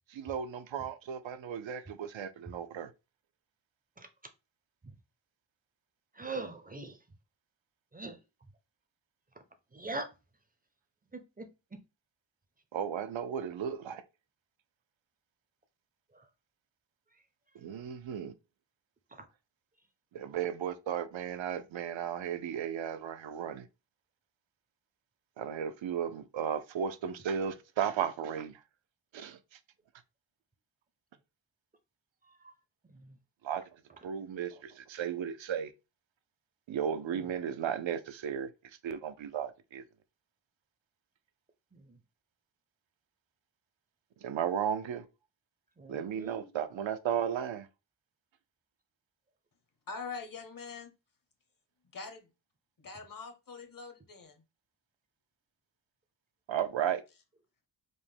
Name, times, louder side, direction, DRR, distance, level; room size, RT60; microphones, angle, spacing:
voice 1, 0.1-2.9 12.7-14.0 17.6-18.3 20.1-23.7 25.4-28.6 29.1-29.6 33.4-33.6 34.0-35.7 36.7-38.5 38.8-39.8 44.2-45.0 45.9-47.7 56.5-57.0, right 8 dB, 85° right, 0.6 m, -35 dB
voice 2, 6.2-6.9 7.9-8.2 9.7-10.1 11.1-11.5 45.8-46.4, right 2 dB, 20° right, 0.5 m, -40 dB
voice 3, 49.9-50.9 51.9-52.3 52.8-54.4, left 4 dB, 45° left, 0.8 m, -43 dB
5.2 x 2.1 x 3.3 m
wide cardioid pair, 155°, 45 cm